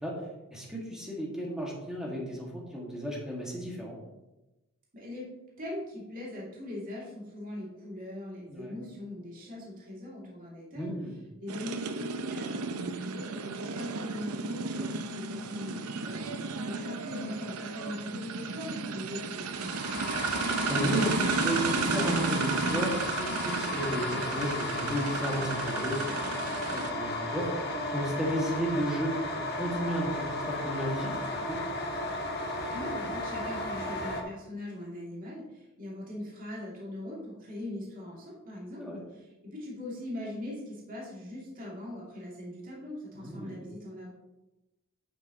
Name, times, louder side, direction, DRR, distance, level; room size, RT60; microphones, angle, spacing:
voice 1, 0.5-4.0 8.5-8.8 10.8-11.1 16.0-16.3 20.7-26.0 26.7-27.5 27.9-31.1 31.5-31.6 38.8-39.0 43.2-43.6, right 1 dB, 5° right, -4 dB, 1.8 m, -33 dB
voice 2, 4.9-5.3 5.6-10.9 11.4-20.0 32.7-44.1, left 1 dB, 40° right, -5 dB, 2.5 m, -41 dB
sound 1, 11.5-26.9, right 4 dB, 85° right, 0.6 m, -33 dB
sound 2, 19.5-34.2, left 2 dB, 45° left, 1.2 m, -34 dB
8.8 x 7.9 x 3.0 m, 1.0 s
head